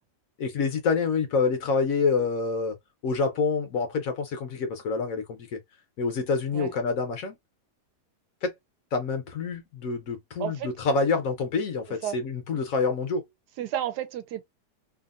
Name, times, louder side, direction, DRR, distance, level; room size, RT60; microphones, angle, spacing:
voice 1, 0.4-2.8 3.0-5.6 6.0-7.4 8.4-8.5 8.9-13.2, left 4 dB, 60° left, 1.0 m, -27 dB
voice 2, 10.4-10.7 12.0-12.2 13.6-14.4, right 10 dB, 75° right, 1.1 m, -31 dB
2.8 x 2.5 x 2.4 m
omnidirectional pair, 1.8 m